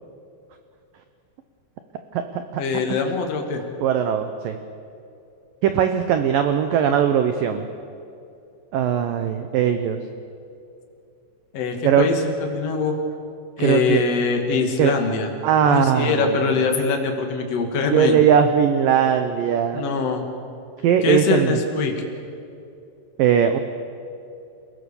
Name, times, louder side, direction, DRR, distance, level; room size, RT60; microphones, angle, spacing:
voice 1, 2.6-3.6 11.5-13.0 13.6-15.3 15.7-18.2 19.7-20.3 21.0-21.9, left 4 dB, 45° left, 3 dB, 2.5 m, -23 dB
voice 2, 3.8-4.6 5.6-7.7 8.7-10.0 11.8-12.1 13.6-14.0 14.8-14.9 15.4-16.2 17.9-19.8 20.8-21.6 23.2-23.6, right 8 dB, 90° right, 8 dB, 1.9 m, -19 dB
28.5 x 17.0 x 7.0 m, 2.6 s
omnidirectional pair, 5.2 m